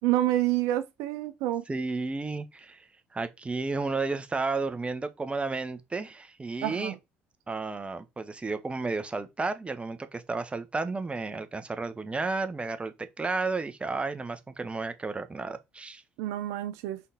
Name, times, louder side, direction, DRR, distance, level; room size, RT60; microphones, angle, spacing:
voice 1, 0.0-1.6 6.6-6.9 16.2-17.0, right 14 dB, 75° right, 0.6 m, -28 dB
voice 2, 1.7-2.8 3.1-6.9 7.5-16.0, right 3 dB, 20° right, 1.2 m, -32 dB
5.8 x 4.1 x 4.2 m
hypercardioid pair, 60°, 5 cm